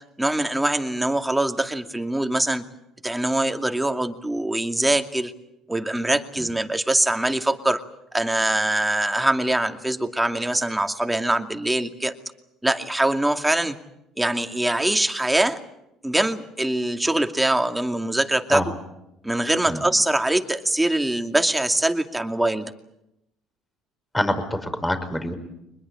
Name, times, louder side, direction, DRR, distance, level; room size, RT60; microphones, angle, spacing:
voice 1, 0.2-2.6 3.0-5.3 5.7-7.8 8.1-12.1 12.6-13.8 14.2-15.6 16.0-18.7 19.2-22.7, right 1 dB, 10° right, 6 dB, 2.4 m, -23 dB
voice 2, 24.1-25.3, left 1 dB, 10° left, 9 dB, 5.2 m, -25 dB
24.0 x 21.0 x 8.8 m, 0.86 s
supercardioid pair, 75°, 0 cm